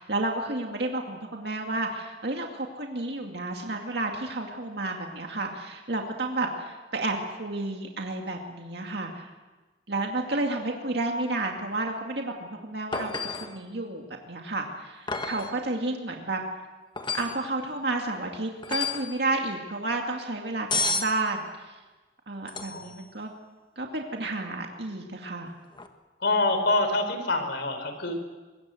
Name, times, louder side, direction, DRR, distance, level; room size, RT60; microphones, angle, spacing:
voice 1, 0.0-9.3 9.9-13.1 13.4-16.4 17.1-21.8 22.3-23.3 23.8-25.5, right 2 dB, 60° right, 1 dB, 2.4 m, -31 dB
sound 1, 12.9-13.6 15.1-15.6 17.0-17.4 18.6-19.1 20.7-21.2 22.5-23.0 25.7-25.9, left 3 dB, 25° left, 1.5 m, -30 dB
voice 2, 26.2-28.1, left 2 dB, 65° left, 7 dB, 4.4 m, -26 dB
25.0 x 21.5 x 7.8 m, 1.2 s
head